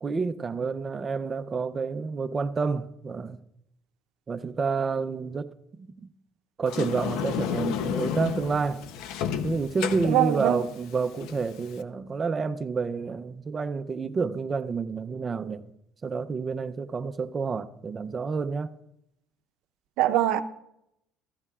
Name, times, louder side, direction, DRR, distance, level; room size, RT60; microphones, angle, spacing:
voice 1, 0.0-3.4 4.3-6.1 6.6-8.8 9.4-15.7 16.0-18.7, right 4 dB, 25° right, 0.5 m, -29 dB
Sliding door, 6.7-11.8, left 8 dB, 70° left, 0.7 m, -32 dB
voice 2, 10.0-10.6 20.0-20.4, right 13 dB, 70° right, 0.7 m, -23 dB
15.5 x 14.5 x 2.4 m
cardioid pair, 150°, 0 cm